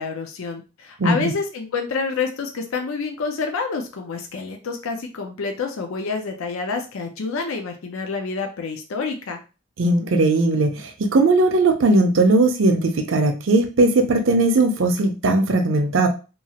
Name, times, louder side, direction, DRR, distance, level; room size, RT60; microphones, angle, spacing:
voice 1, 0.0-9.4, left 4 dB, 65° left, 4 dB, 0.5 m, -28 dB
voice 2, 1.0-1.3 9.8-16.1, right 2 dB, 60° right, 6 dB, 0.5 m, -18 dB
3.0 x 2.3 x 2.8 m, 0.32 s
head